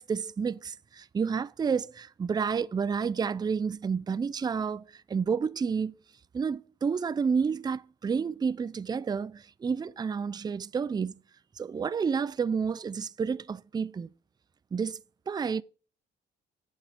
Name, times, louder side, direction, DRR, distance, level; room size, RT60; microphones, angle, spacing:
voice 1, 0.0-5.9 6.3-11.1 11.6-14.1 14.7-15.0 15.3-15.6, right 6 dB, 20° right, 0.4 m, -30 dB
8.4 x 5.4 x 6.3 m
cardioid pair, 90°, 20 cm